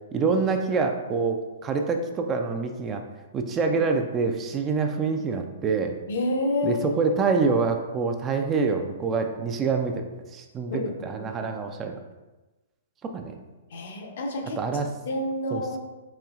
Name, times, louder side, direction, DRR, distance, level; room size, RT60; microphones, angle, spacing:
voice 1, 0.1-3.0 3.3-5.9 6.6-12.0 13.0-13.4 14.6-14.9 15.5-15.8, right 4 dB, 25° right, 5 dB, 0.3 m, -26 dB
voice 2, 6.1-6.9 10.7-11.3 13.7-14.6 15.1-15.8, left 1 dB, 65° left, 2 dB, 0.6 m, -29 dB
4.3 x 3.0 x 2.4 m, 1.1 s
hypercardioid pair, 120°, 0 cm